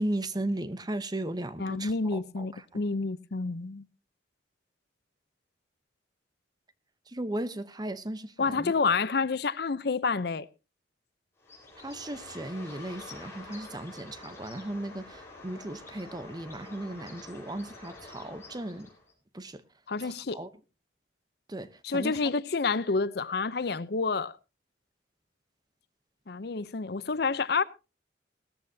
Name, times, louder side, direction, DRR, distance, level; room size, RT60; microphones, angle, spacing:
voice 1, 0.0-2.8 7.1-8.7 11.8-18.9 19.3-19.6 20.0-20.5 21.5-22.3, right 1 dB, 20° right, 0.8 m, -36 dB
voice 2, 1.6-3.8 8.4-10.5 19.9-20.4 21.8-24.4 26.3-27.6, left 4 dB, 55° left, 0.6 m, -29 dB
Bird, 11.4-19.1, left 2 dB, 15° left, 4.4 m, -47 dB
18.0 x 14.0 x 2.7 m
head